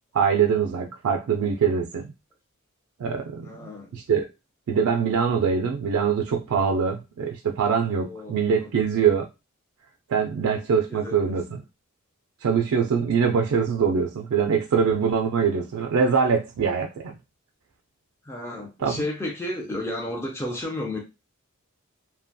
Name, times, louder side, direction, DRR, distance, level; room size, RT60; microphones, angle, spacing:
voice 1, 0.1-2.1 3.0-3.5 3.9-4.3 4.7-9.3 10.1-11.6 12.4-17.1 18.8-19.0, right 6 dB, 80° right, 0.3 m, -23 dB
voice 2, 3.4-3.9 8.0-8.7 10.9-11.3 18.2-21.0, left 1 dB, 10° left, 0.4 m, -32 dB
2.8 x 2.2 x 2.6 m
head